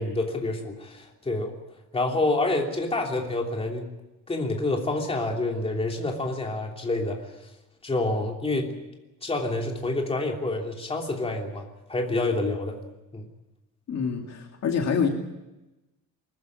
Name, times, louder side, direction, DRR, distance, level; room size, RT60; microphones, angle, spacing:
voice 1, 0.0-1.5 1.9-3.8 4.3-7.3 7.8-8.7 9.2-12.8 13.1-13.3, left 2 dB, 20° left, 1 dB, 3.1 m, -28 dB
voice 2, 13.9-15.1, left 6 dB, 55° left, 3 dB, 2.5 m, -26 dB
24.5 x 14.5 x 9.6 m, 1.0 s
cardioid pair, 170°, 32 cm